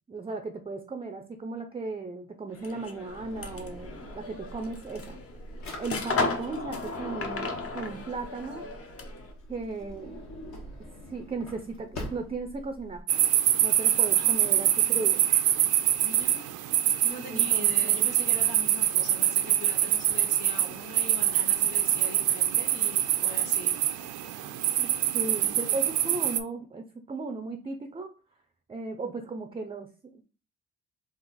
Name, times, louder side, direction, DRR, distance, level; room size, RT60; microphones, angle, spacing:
voice 1, 0.1-5.2 5.8-8.7 9.5-10.2 11.1-13.0 13.6-15.2 17.3-18.1 24.8-28.1 28.7-30.2, right 3 dB, 20° right, 7 dB, 0.5 m, -36 dB
sound 1, 2.5-9.3, left 3 dB, 50° left, 0.9 m, -35 dB
Drawer open or close, 3.1-13.0, equal, 65° left, 1.5 m, -44 dB
sound 2, 13.1-26.4, right 12 dB, 80° right, 0.5 m, -25 dB
voice 2, 13.8-14.8 16.0-16.5 17.0-24.7, left 3 dB, 85° left, 1 dB, 1.0 m, -43 dB
3.7 x 2.5 x 4.1 m, 0.35 s
cardioid pair, 90°, 30 cm